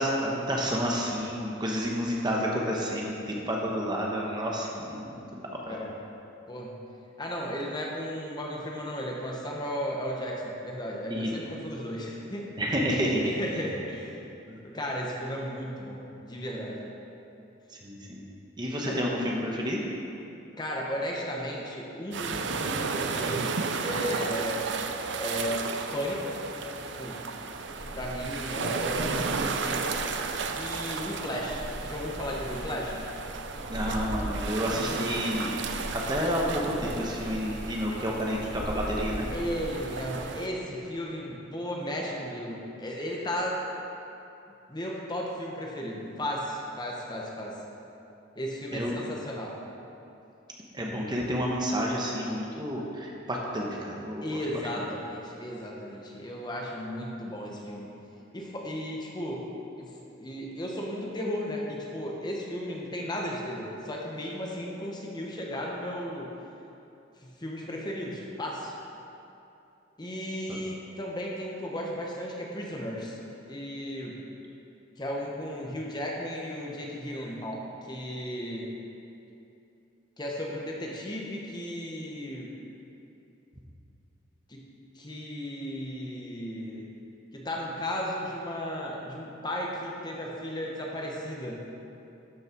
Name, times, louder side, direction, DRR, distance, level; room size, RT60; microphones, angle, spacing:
voice 1, 0.0-5.4 11.1-11.3 12.6-13.6 14.5-14.6 17.8-18.2 18.6-19.8 33.7-35.7 36.1-39.3 48.7-49.0 50.7-54.3 70.5-70.6, equal, 20° right, -2 dB, 1.0 m, -30 dB
voice 2, 6.5-6.8 7.2-12.8 13.2-14.2 14.6-16.8 18.8-19.0 20.6-24.7 25.1-25.7 25.9-26.4 27.0-27.2 27.9-29.9 30.5-33.0 39.3-43.6 44.7-47.5 48.3-49.5 54.2-57.9 58.3-59.4 59.8-59.9 60.2-66.3 67.2-68.7 70.0-73.2 73.5-74.2 75.0-78.7 80.2-82.5 84.5-84.6 84.9-86.9 87.3-91.6, equal, 20° left, -2 dB, 1.1 m, -35 dB
sound 1, 22.1-40.5, right 4 dB, 65° right, 0.6 m, -34 dB
sound 2, 27.5-40.2, equal, 45° left, 2.3 m, -41 dB
12.5 x 6.4 x 4.5 m, 2.8 s
head